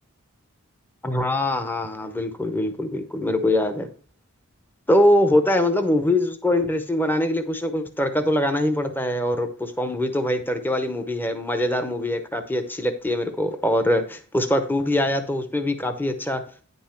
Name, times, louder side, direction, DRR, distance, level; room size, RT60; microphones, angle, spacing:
voice 1, 1.0-3.9 4.9-16.4, left 1 dB, 10° left, 8 dB, 0.7 m, -23 dB
9.5 x 5.5 x 4.4 m, 0.41 s
head